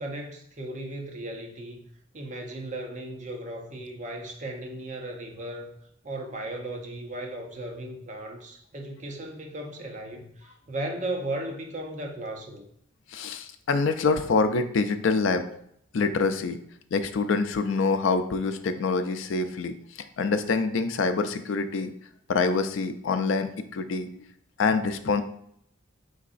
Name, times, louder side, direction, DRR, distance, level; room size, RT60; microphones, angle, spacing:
voice 1, 0.0-1.9 2.1-5.8 6.0-12.7, right 1 dB, 35° right, 2 dB, 0.6 m, -36 dB
voice 2, 13.1-15.6 15.9-16.6 16.9-19.8 20.2-21.9 22.3-24.1 24.6-25.2, left 4 dB, 80° left, 9 dB, 0.4 m, -25 dB
4.6 x 4.0 x 2.5 m, 0.69 s
head